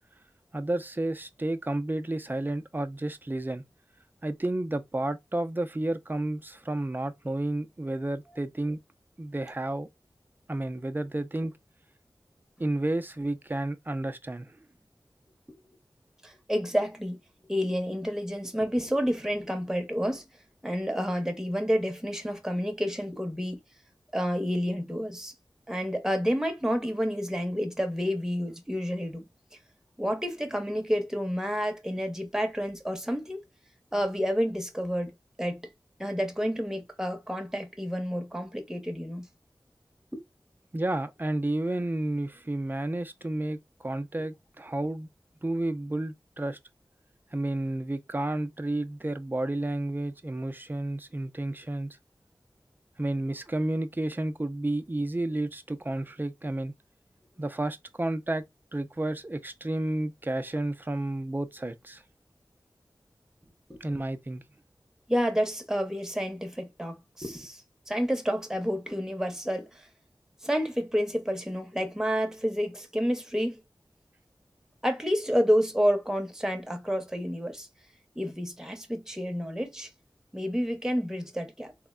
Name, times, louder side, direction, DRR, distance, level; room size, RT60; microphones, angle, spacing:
voice 1, 0.5-3.6 4.2-8.8 9.2-9.9 10.5-11.5 12.6-14.6 40.7-45.1 45.4-46.6 47.3-52.0 53.0-56.7 57.4-58.4 58.7-62.0 63.8-64.4, right 1 dB, 25° right, 0.4 m, -31 dB
voice 2, 16.2-17.2 17.5-20.3 20.6-23.6 24.1-25.3 25.7-29.3 30.0-33.4 33.9-35.1 35.4-35.6 36.0-39.3 40.1-40.2 63.7-63.8 65.1-67.6 67.9-69.9 70.4-73.6 74.8-77.7 78.2-79.9 80.3-81.7, equal, 5° right, 0.8 m, -29 dB
3.5 x 2.1 x 2.3 m
wide cardioid pair, 55°, 8 cm